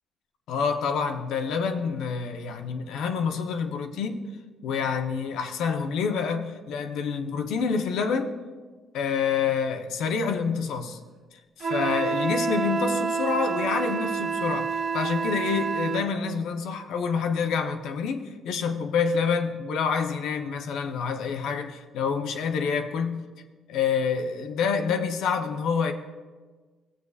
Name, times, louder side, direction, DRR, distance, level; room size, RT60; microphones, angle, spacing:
voice 1, 0.5-4.2 4.6-8.3 8.9-11.0 11.6-23.2 23.7-25.9, left 6 dB, 80° left, 5 dB, 0.8 m, -27 dB
Wind instrument woodwind instrument, 11.6-16.1, right 5 dB, 60° right, 1.1 m, -28 dB
16.5 x 8.1 x 2.4 m, 1.4 s
cardioid pair, 115°, 0 cm